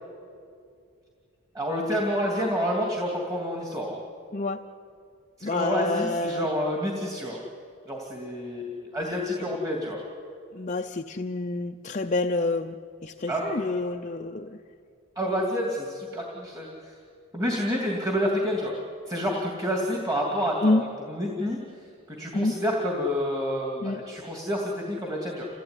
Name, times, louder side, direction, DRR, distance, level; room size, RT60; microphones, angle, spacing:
voice 1, 1.5-4.0 5.4-7.4 7.9-10.0 13.3-13.5 15.2-16.9 17.3-18.7 19.1-21.6 22.2-25.5, equal, 15° right, -1 dB, 2.7 m, -28 dB
voice 2, 4.3-4.6 5.4-6.5 9.4-9.5 10.5-12.8 13.0-14.6 20.6-20.8 22.3-22.6 23.8-24.0, left 2 dB, 35° left, 4 dB, 0.6 m, -28 dB
28.0 x 16.5 x 9.8 m, 2.4 s
head